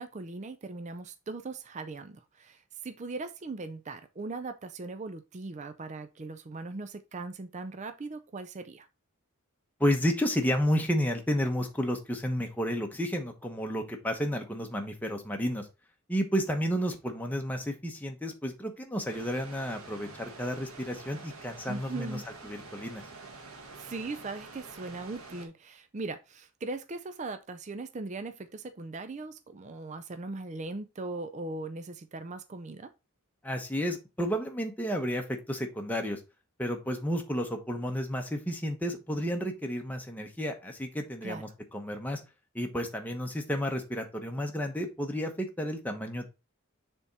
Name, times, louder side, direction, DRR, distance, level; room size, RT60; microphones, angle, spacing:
voice 1, 0.0-8.9 21.7-22.3 23.8-32.9 41.2-41.4, right 3 dB, 35° right, 0.5 m, -39 dB
voice 2, 9.8-15.7 16.1-23.0 33.4-36.2 36.6-42.2 42.5-46.3, equal, 10° left, 1.0 m, -31 dB
sound 1, 19.1-25.5, right 3 dB, 75° right, 1.6 m, -47 dB
6.9 x 3.6 x 4.1 m
head